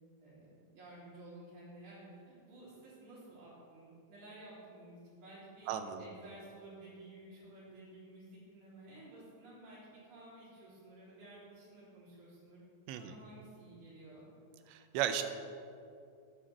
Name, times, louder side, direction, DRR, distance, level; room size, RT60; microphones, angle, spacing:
voice 1, 0.2-5.7 6.0-12.6 13.0-14.3, right 2 dB, 45° right, -9 dB, 4.7 m, -53 dB
voice 2, 5.7-6.0 12.9-13.1 14.7-15.2, right 10 dB, 90° right, 8 dB, 2.9 m, -35 dB
9.4 x 8.9 x 7.3 m, 2.6 s
omnidirectional pair, 5.0 m